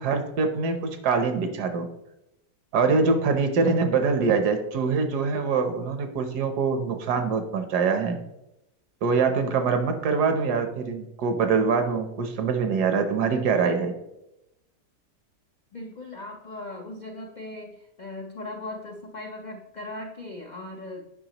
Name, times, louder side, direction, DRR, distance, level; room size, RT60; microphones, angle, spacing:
voice 1, 0.0-1.9 2.7-8.2 9.0-13.9, right 5 dB, 75° right, 7 dB, 1.4 m, -24 dB
voice 2, 15.7-21.1, left 2 dB, 70° left, 1 dB, 0.4 m, -38 dB
8.9 x 5.8 x 2.9 m, 0.87 s
omnidirectional pair, 1.8 m